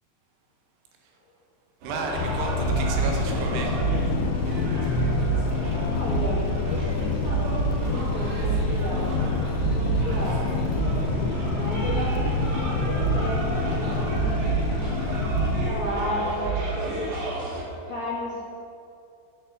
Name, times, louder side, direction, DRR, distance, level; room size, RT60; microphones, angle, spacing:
sound 1, 1.8-17.6, right 4 dB, 55° right, 4.0 m, -29 dB
voice 1, 1.8-3.8 17.2-17.4, right 4 dB, 85° right, 1 dB, 3.9 m, -33 dB
sound 2, 2.2-15.7, left 4 dB, 75° left, 3.1 m, -27 dB
voice 2, 5.9-9.3 9.7-10.6 11.4-14.7 15.6-17.1 17.7-18.4, left 1 dB, 35° left, -7 dB, 2.0 m, -33 dB
9.5 x 8.5 x 8.1 m, 2.5 s
omnidirectional pair, 5.3 m